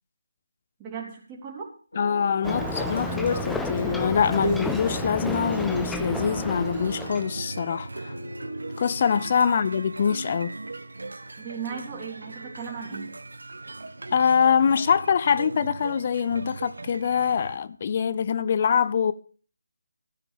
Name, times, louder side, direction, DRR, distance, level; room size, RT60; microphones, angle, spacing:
voice 1, 0.8-1.7 9.4-9.5 11.4-13.1, right 6 dB, 15° right, 3.6 m, -37 dB
sound 1, 1.9-11.1, left 2 dB, 75° left, 3.7 m, -43 dB
voice 2, 2.0-8.1 8.8-10.5 14.1-19.1, left 7 dB, 35° left, 0.6 m, -24 dB
Ocean, 2.4-7.3, left 3 dB, 5° left, 0.8 m, -32 dB
sound 2, 2.4-17.6, right 2 dB, 70° right, 1.0 m, -36 dB
15.0 x 9.1 x 5.0 m
figure-of-eight pair, 155°, 0 cm